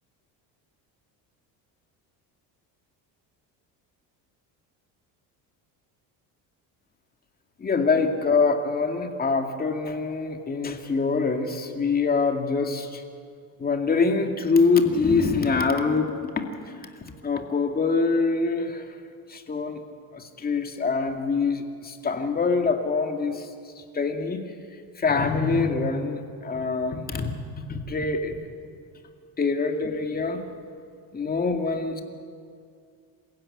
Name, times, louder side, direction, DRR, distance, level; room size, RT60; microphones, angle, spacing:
voice 1, 7.6-13.0 13.6-16.8 17.2-18.8 19.3-19.8 20.1-23.5 23.9-24.4 25.0-28.4 29.4-30.4 31.1-32.0, left 4 dB, 25° left, 4 dB, 2.3 m, -24 dB
27.0 x 15.5 x 9.9 m, 2.3 s
cardioid pair, 135°, 38 cm